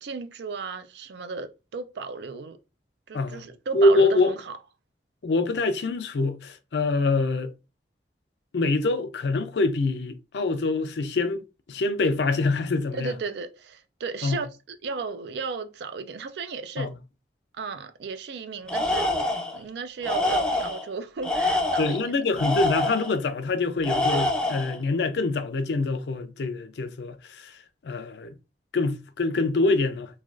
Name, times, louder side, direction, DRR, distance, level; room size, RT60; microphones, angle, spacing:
voice 1, 0.0-2.6 3.1-4.5 12.9-16.9 17.6-22.0, right 4 dB, 70° right, 0.4 m, -35 dB
voice 2, 3.1-3.4 3.7-4.4 5.2-7.5 8.5-11.4 11.7-13.1 14.2-14.4 16.8-16.9 21.8-27.6 27.8-28.3 28.7-30.2, left 3 dB, 70° left, 0.4 m, -25 dB
Tools, 18.7-19.6 20.0-20.8 21.2-23.1 23.8-24.8, left 2 dB, 5° left, 0.4 m, -26 dB
3.2 x 2.3 x 2.4 m
head